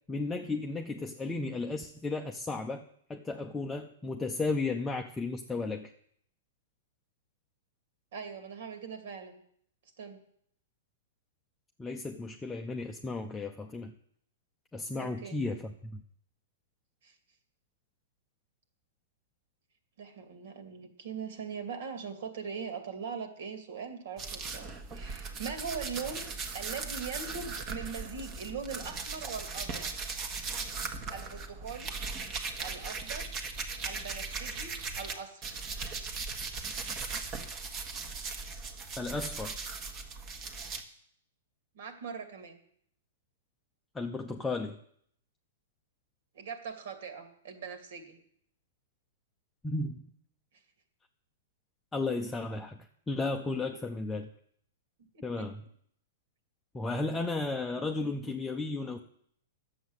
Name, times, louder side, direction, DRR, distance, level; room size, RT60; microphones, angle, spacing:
voice 1, 0.1-5.9 11.8-13.9 14.7-16.0 39.0-39.5 43.9-44.8 49.6-50.1 51.9-52.8 53.1-54.3 55.2-55.6 56.7-59.0, left 3 dB, 10° left, 3 dB, 0.7 m, -34 dB
voice 2, 8.1-9.4 10.0-10.2 15.0-15.4 17.0-17.1 20.0-26.3 26.5-29.9 31.1-31.9 32.6-33.3 33.8-35.5 41.7-42.6 46.3-48.2 55.1-55.5, right 6 dB, 65° right, 7 dB, 2.5 m, -41 dB
sound 1, 24.2-35.1 35.4-40.8, right 4 dB, 30° right, 1.4 m, -38 dB
11.0 x 7.3 x 8.1 m, 0.67 s
hypercardioid pair, 145°, 0 cm